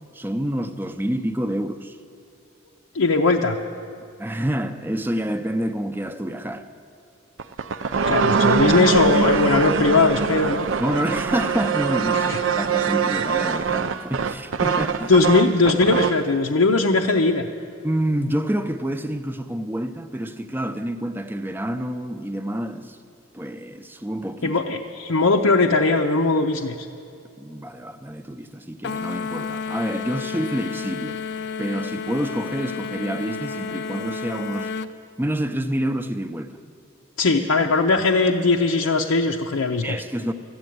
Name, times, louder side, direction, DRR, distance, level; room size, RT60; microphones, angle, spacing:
voice 1, 0.1-2.0 4.2-6.7 10.8-15.1 17.8-23.0 23.3-24.6 27.4-31.2 31.6-34.8 35.2-36.6 39.8-40.3, right 1 dB, 10° right, 0.5 m, -28 dB
voice 2, 2.9-3.6 8.1-10.7 12.1-12.4 15.1-17.5 24.4-26.9 37.2-40.0, left 3 dB, 90° left, 0.6 m, -19 dB
sound 1, 7.4-16.3, right 5 dB, 60° right, 0.4 m, -23 dB
sound 2, 28.8-34.9, left 5 dB, 55° left, 0.4 m, -31 dB
13.5 x 8.7 x 9.2 m
head